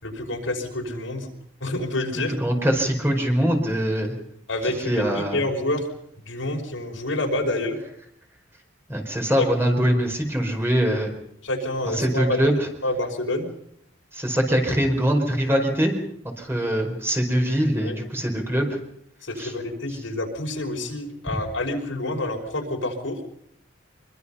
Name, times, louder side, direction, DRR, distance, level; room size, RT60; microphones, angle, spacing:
voice 1, 0.0-1.3 1.6-2.4 4.5-5.9 6.2-7.8 9.4-9.5 11.4-13.5 17.8-18.0 19.2-23.2, left 1 dB, 80° left, 2 dB, 5.5 m, -28 dB
voice 2, 2.4-4.1 4.9-5.4 8.9-11.1 12.0-12.6 14.1-15.9 16.4-18.7 19.4-19.5, equal, 10° right, 2 dB, 4.8 m, -23 dB
25.5 x 23.5 x 5.7 m, 0.71 s
head